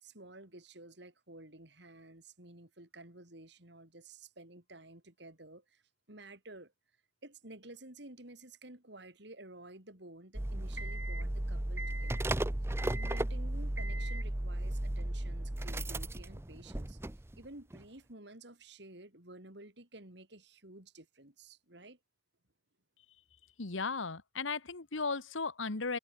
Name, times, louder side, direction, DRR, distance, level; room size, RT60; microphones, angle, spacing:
voice 1, 0.0-5.8 6.1-6.7 7.2-12.3 12.9-17.0 17.4-22.0, right 2 dB, 65° right, 3.7 m, -52 dB
sound 1, 10.3-17.5 17.7-17.8, right 1 dB, 15° right, 0.5 m, -35 dB
voice 2, 23.6-26.0, left 4 dB, 90° left, 1.6 m, -36 dB
head